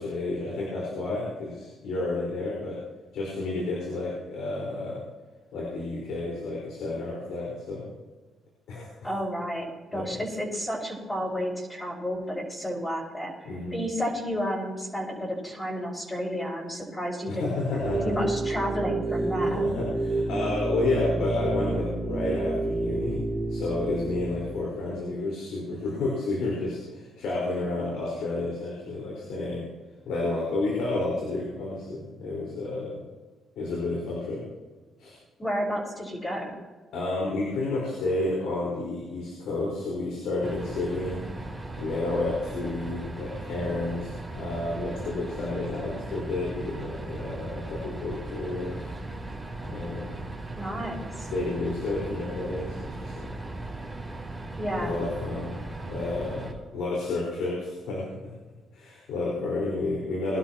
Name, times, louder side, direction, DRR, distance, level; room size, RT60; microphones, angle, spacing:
voice 1, 0.0-2.8 3.1-5.0 5.5-7.9 8.7-8.9 9.9-10.1 13.4-13.8 17.3-18.1 19.4-23.2 23.5-29.6 30.0-33.0 33.5-34.4 35.0-35.2 36.9-41.2 41.8-48.9 49.6-50.2 51.3-53.3 54.8-55.6 55.9-58.0 58.7-60.4, left 2 dB, 80° left, -4 dB, 4.8 m, -31 dB
voice 2, 9.0-9.7 9.9-17.6 18.0-19.6 35.4-36.6 50.6-51.3 54.6-54.9, equal, 15° left, -5 dB, 5.6 m, -31 dB
sound 1, 17.8-24.6, right 2 dB, 25° right, 5.2 m, -29 dB
sound 2, 40.4-56.5, right 2 dB, 5° right, 3.8 m, -38 dB
22.5 x 12.0 x 3.1 m, 1.3 s
cardioid pair, 90°, 0 cm